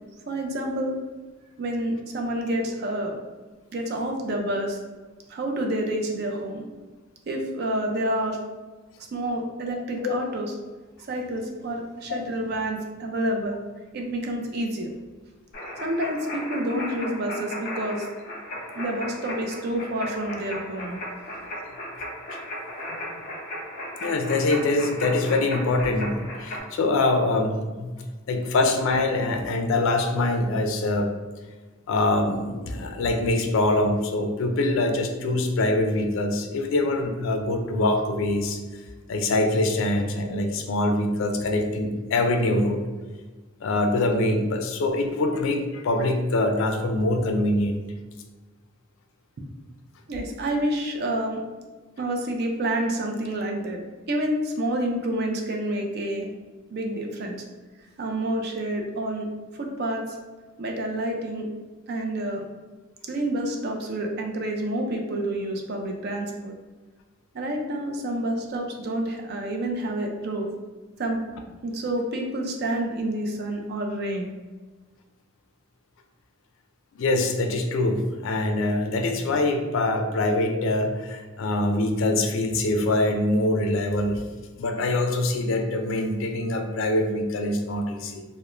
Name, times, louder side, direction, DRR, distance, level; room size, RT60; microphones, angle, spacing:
voice 1, 0.3-0.9 1.6-3.1 3.7-4.8 5.3-6.6 7.3-8.4 9.1-10.5 11.1-13.6 13.9-14.9 15.8-18.1 18.8-21.0 50.1-51.4 52.0-53.8 54.1-56.3 56.7-57.4 58.0-60.2 60.6-61.5 61.9-62.4 63.1-66.5 67.3-70.5 71.0-71.2 71.6-74.3, right 1 dB, 45° right, 2 dB, 0.4 m, -28 dB
sound 1, 15.5-26.6, left 1 dB, 40° left, 0.7 m, -36 dB
voice 2, 24.0-27.9 28.3-31.1 31.9-38.6 39.1-42.8 43.6-47.8 76.9-84.3 84.6-88.2, left 2 dB, 65° left, 4 dB, 0.3 m, -24 dB
2.4 x 2.0 x 3.0 m, 1.3 s
head